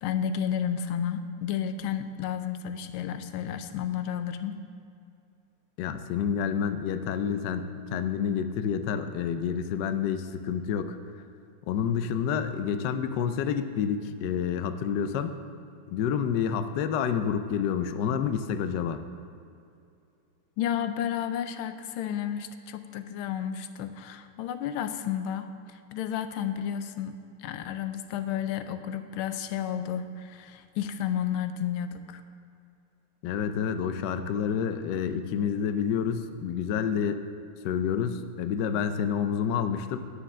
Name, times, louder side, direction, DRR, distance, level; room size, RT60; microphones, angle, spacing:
voice 1, 0.0-4.5 20.6-27.1 27.4-32.2, left 9 dB, 90° left, 10 dB, 1.4 m, -32 dB
voice 2, 5.8-11.0 11.7-15.3 15.9-19.0 33.2-37.2 37.6-40.0, left 7 dB, 70° left, 9 dB, 1.0 m, -28 dB
9.4 x 6.7 x 6.2 m, 2.5 s
omnidirectional pair, 2.2 m